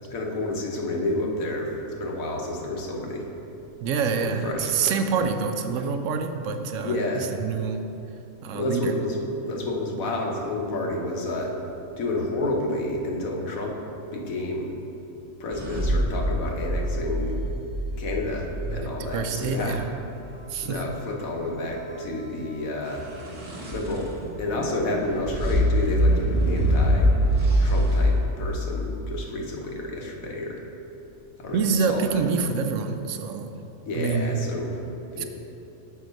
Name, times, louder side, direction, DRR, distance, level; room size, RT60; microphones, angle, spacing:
voice 1, 0.1-3.3 4.2-5.3 6.8-7.3 8.5-9.2 9.4-11.6 12.0-13.8 14.1-14.7 15.4-17.4 18.0-19.8 20.6-23.1 23.7-24.1 24.4-27.1 27.6-30.6 31.4-32.2 33.9-34.8 35.1-35.2, left 2 dB, 85° left, 0 dB, 1.4 m, -30 dB
voice 2, 3.8-7.8 8.4-8.9 18.6-19.9 20.5-20.8 31.5-33.5 34.0-34.3 35.2-35.3, right 5 dB, 75° right, 7 dB, 0.9 m, -26 dB
sound 1, 15.5-19.6 22.9-28.2, equal, 35° right, 1.2 m, -24 dB
7.0 x 4.7 x 5.2 m, 3.0 s
omnidirectional pair, 1.4 m